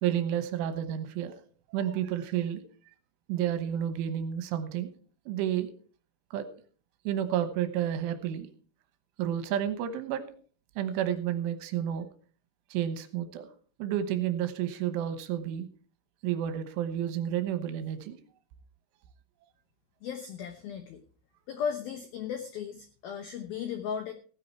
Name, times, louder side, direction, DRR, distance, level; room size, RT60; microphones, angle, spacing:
voice 1, 0.0-1.4 1.7-2.6 3.3-4.9 5.3-5.7 6.3-6.5 7.1-8.5 9.2-10.2 10.8-12.1 12.7-13.5 13.8-15.7 16.2-18.2, right 10 dB, 75° right, 10 dB, 3.4 m, -30 dB
voice 2, 20.0-21.0 21.5-24.1, left 7 dB, 85° left, 8 dB, 2.1 m, -36 dB
16.0 x 9.5 x 4.5 m, 0.43 s
omnidirectional pair, 5.8 m